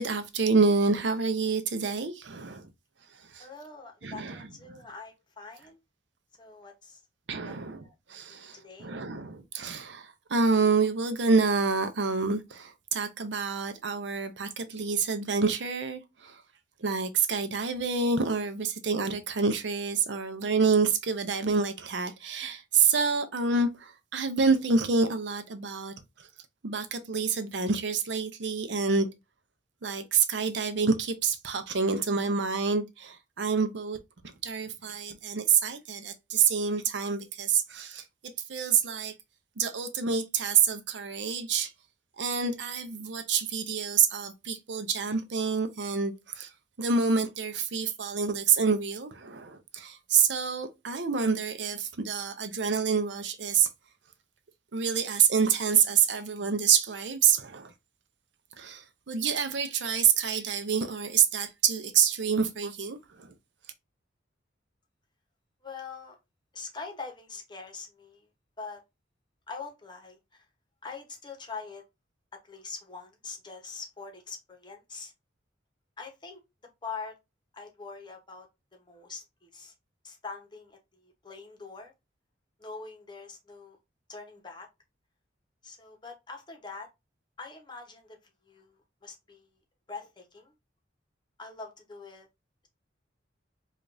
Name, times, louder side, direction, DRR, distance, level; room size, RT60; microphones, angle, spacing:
voice 1, 0.0-2.7 3.1-3.5 4.0-4.8 7.3-16.4 16.8-26.3 26.6-29.1 29.8-39.1 39.6-41.7 42.2-46.5 46.8-53.7 54.7-57.7 58.6-63.3, right 5 dB, 65° right, 0.6 m, -27 dB
voice 2, 3.4-5.8 6.4-7.0 7.4-7.9 8.3-8.9 65.6-66.2 66.5-68.3 68.6-68.8 69.5-70.5 70.8-71.8 72.4-75.1 76.0-76.4 76.8-77.2 77.5-79.7 80.0-81.9 82.6-83.8 84.1-84.7 85.6-86.9 87.4-88.2 88.4-89.6 89.9-90.5 91.4-92.3, left 4 dB, 25° left, 0.9 m, -43 dB
4.9 x 2.4 x 2.6 m
head